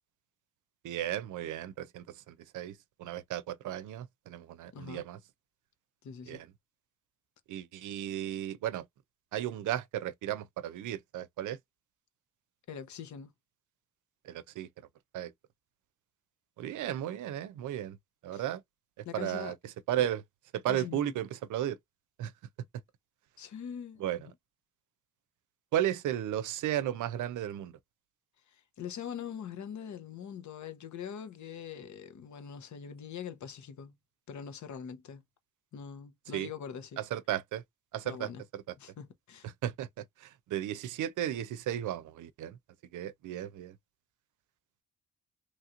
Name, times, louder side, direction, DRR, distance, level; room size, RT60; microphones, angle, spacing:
voice 1, 0.8-5.2 6.3-6.5 7.5-8.9 9.3-11.6 14.2-14.7 15.1-15.3 16.6-18.0 18.2-18.6 19.0-20.2 20.5-21.8 22.2-22.3 24.0-24.2 25.7-27.7 36.3-36.5 37.0-37.6 37.9-38.6 39.4-42.6 42.9-43.8, right 12 dB, 80° right, 0.5 m, -35 dB
voice 2, 4.7-5.0 6.0-6.4 12.7-13.3 18.3-18.4 19.0-19.5 20.0-20.1 20.7-21.1 23.4-24.3 28.5-33.9 34.3-35.2 35.7-37.0 38.0-38.4 38.8-39.5, left 7 dB, 70° left, 0.9 m, -43 dB
3.1 x 2.8 x 2.4 m
cardioid pair, 70°, 30 cm